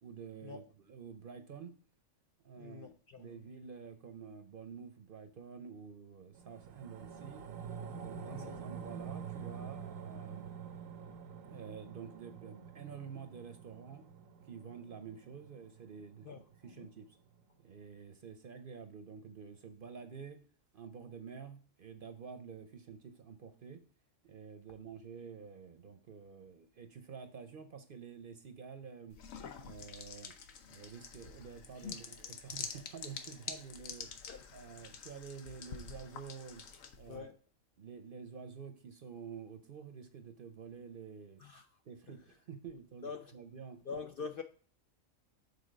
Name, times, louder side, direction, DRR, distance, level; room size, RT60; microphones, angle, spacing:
voice 1, 0.0-1.7 2.4-2.9 3.2-7.4 7.9-10.5 11.5-14.0 14.4-17.1 17.6-20.4 20.7-23.8 24.2-29.2 29.6-30.3 30.7-34.1 34.5-36.6 37.0-37.3 37.8-41.4 41.8-43.9, right 6 dB, 50° right, 0.7 m, -49 dB
voice 2, 2.6-3.3 8.2-8.6 16.2-16.4 16.8-16.9 31.8-32.0 34.3-34.4 34.8-34.9 37.1-37.4 41.4-41.7 43.0-43.3 43.9-44.4, left 5 dB, 60° left, 0.6 m, -44 dB
sound 1, 6.3-16.9 17.3-17.4, right 7 dB, 90° right, 1.1 m, -47 dB
sound 2, 29.1-37.2, left 6 dB, 85° left, 1.2 m, -47 dB
6.9 x 4.0 x 5.0 m
omnidirectional pair, 1.3 m